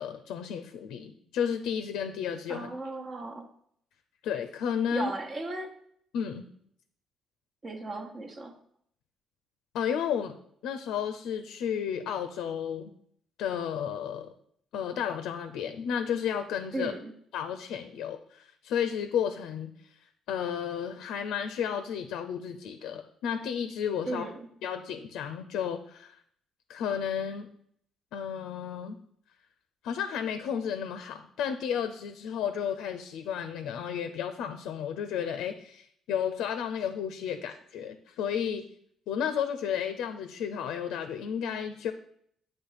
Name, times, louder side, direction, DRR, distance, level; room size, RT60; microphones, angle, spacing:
voice 1, 0.0-2.7 4.2-5.1 6.1-6.5 9.7-10.3 10.6-12.9 13.4-14.3 14.7-16.9 17.3-19.7 20.3-24.3 24.6-26.2 26.7-27.5 28.1-29.0 29.8-38.7 39.1-41.9, left 8 dB, 75° left, 8 dB, 0.5 m, -32 dB
voice 2, 2.5-3.5 4.9-5.7 7.6-8.6 16.7-17.1 24.0-24.5, right 2 dB, 40° right, 5 dB, 1.1 m, -36 dB
7.9 x 3.2 x 5.7 m, 0.66 s
supercardioid pair, 60°, 0 cm